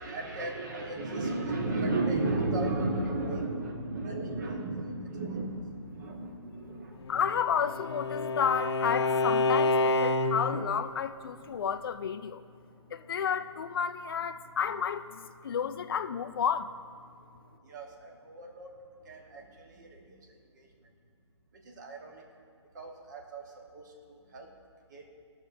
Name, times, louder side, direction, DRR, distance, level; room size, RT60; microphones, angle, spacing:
voice 1, 0.0-7.0 17.7-18.7 19.1-19.4 19.7-20.0 21.8-22.2 22.7-23.4 23.7-24.5 24.9-25.1, right 2 dB, 40° right, 2 dB, 1.2 m, -34 dB
Bowed string instrument, 7.1-10.7, left 2 dB, 65° left, 0.8 m, -28 dB
voice 2, 7.1-12.4 12.9-16.7, left 7 dB, 50° left, 9 dB, 0.4 m, -31 dB
18.5 x 6.8 x 2.7 m, 2.2 s
hypercardioid pair, 160°, 15 cm